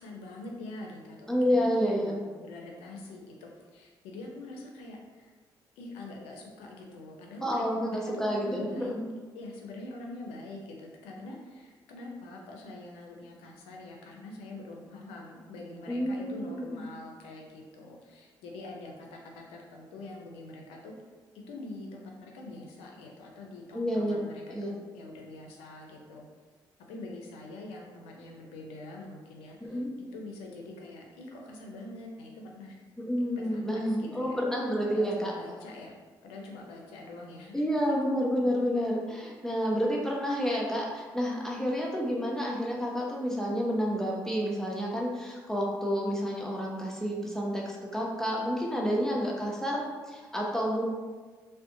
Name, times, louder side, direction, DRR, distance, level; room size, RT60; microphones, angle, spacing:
voice 1, 0.0-5.3 5.8-8.9 9.3-20.9 21.5-26.2 26.9-29.8 30.1-32.8 33.4-33.7 34.0-34.4 34.8-35.9 36.2-37.6, left 2 dB, 85° left, 0 dB, 0.4 m, -44 dB
voice 2, 1.3-2.2 7.4-9.0 15.9-16.8 23.7-24.2 24.5-24.8 29.6-29.9 33.0-35.3 37.5-50.8, equal, 5° left, -3 dB, 0.6 m, -29 dB
2.5 x 2.1 x 2.6 m, 1.4 s
supercardioid pair, 55°, 10 cm